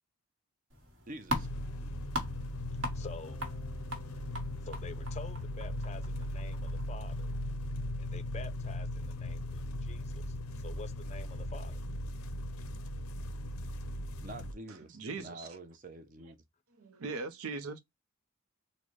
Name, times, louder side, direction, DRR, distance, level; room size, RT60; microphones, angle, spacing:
sound 1, 0.7-7.4, equal, 60° right, 1.3 m, -42 dB
voice 1, 1.1-1.5 14.2-16.4, right 2 dB, 35° right, 0.6 m, -47 dB
sound 2, 1.3-14.5, left 1 dB, 90° left, 0.6 m, -38 dB
voice 2, 2.9-3.4 4.6-7.3 8.0-11.8, left 4 dB, 30° left, 0.4 m, -48 dB
Bass guitar, 3.3-7.2, left 1 dB, 5° left, 0.7 m, -61 dB
voice 3, 14.9-15.5 16.8-17.8, right 4 dB, 85° right, 0.6 m, -39 dB
3.8 x 2.1 x 3.0 m
head